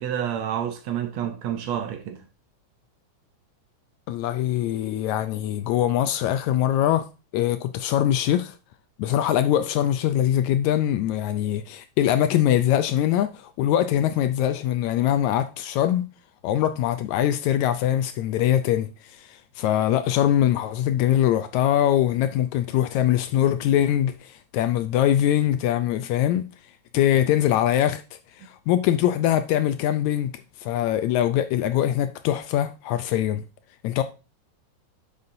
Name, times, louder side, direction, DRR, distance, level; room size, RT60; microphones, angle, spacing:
voice 1, 0.0-2.2, right 9 dB, 70° right, 1.8 m, -29 dB
voice 2, 4.1-7.1 7.3-8.6 9.0-16.1 16.4-26.5 26.9-28.0 28.4-30.3 30.6-33.4 33.8-34.0, left 11 dB, 80° left, 1.8 m, -22 dB
9.4 x 6.7 x 2.6 m
omnidirectional pair, 3.6 m